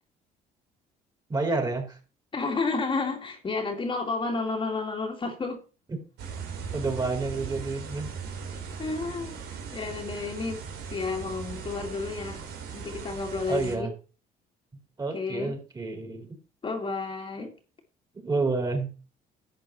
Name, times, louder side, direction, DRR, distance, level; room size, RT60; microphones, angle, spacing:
voice 1, 1.3-2.0 6.7-8.1 13.5-13.9 15.0-16.3 18.2-18.9, right 3 dB, 25° right, 4.7 m, -29 dB
voice 2, 2.3-5.6 8.8-9.3 9.7-10.6 10.9-12.5 12.7-13.9 15.1-15.5 16.6-17.6, left 3 dB, 30° left, 2.2 m, -31 dB
sound 1, 6.2-13.7, right 6 dB, 85° right, 3.8 m, -38 dB
12.0 x 8.3 x 4.3 m
cardioid pair, 110°, 17 cm